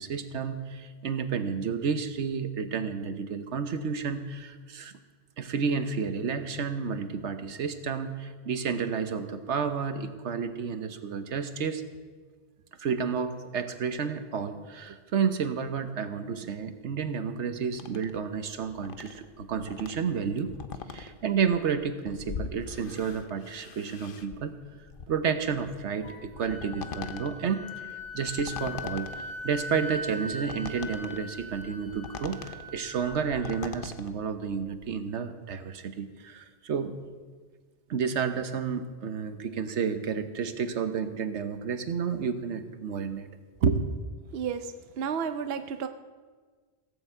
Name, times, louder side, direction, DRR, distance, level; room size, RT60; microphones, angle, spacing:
voice 1, 0.0-4.9 5.4-11.8 12.8-20.5 20.9-24.5 25.1-36.9 37.9-43.3 43.6-43.8, right 6 dB, 80° right, 9 dB, 1.2 m, -31 dB
sound 1, 17.7-35.0, left 6 dB, 55° left, 0.9 m, -43 dB
Wind instrument woodwind instrument, 26.0-33.8, left 2 dB, 10° left, 2.2 m, -41 dB
voice 2, 44.3-45.9, right 7 dB, 65° right, 9 dB, 0.8 m, -32 dB
16.0 x 7.0 x 7.9 m, 1.5 s
omnidirectional pair, 1.2 m